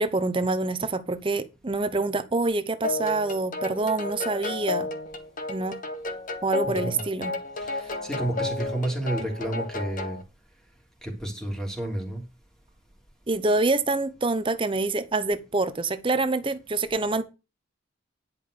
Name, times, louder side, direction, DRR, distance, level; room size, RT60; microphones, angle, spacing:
voice 1, 0.0-4.9 5.5-5.8 6.4-7.3 13.3-17.2, right 3 dB, 25° right, 0.7 m, -26 dB
sound 1, 2.8-10.2, left 2 dB, 40° left, 1.4 m, -32 dB
voice 2, 6.6-7.0 7.6-10.2 11.0-12.2, right 1 dB, 5° left, 3.2 m, -31 dB
10.5 x 5.5 x 6.5 m
head